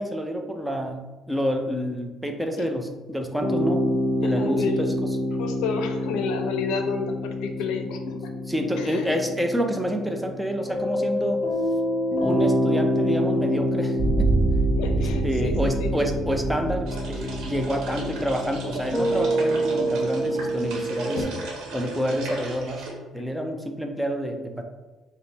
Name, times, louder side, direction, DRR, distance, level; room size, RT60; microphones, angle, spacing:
voice 1, 0.0-3.8 4.2-4.9 8.5-11.4 12.2-14.3 15.0-21.3 21.7-22.9 23.1-24.6, equal, 5° right, 3 dB, 0.5 m, -28 dB
sound 1, 3.4-21.2, equal, 50° left, 1.2 m, -27 dB
voice 2, 4.2-5.0 5.4-8.3 8.8-9.1 14.8-16.1, left 5 dB, 90° left, 6 dB, 0.4 m, -30 dB
sound 2, 14.0-19.2, right 3 dB, 50° right, 0.5 m, -26 dB
sound 3, 16.9-22.9, right 3 dB, 80° right, 1.0 m, -36 dB
5.1 x 2.0 x 3.3 m, 1.2 s
cardioid pair, 105°, 0 cm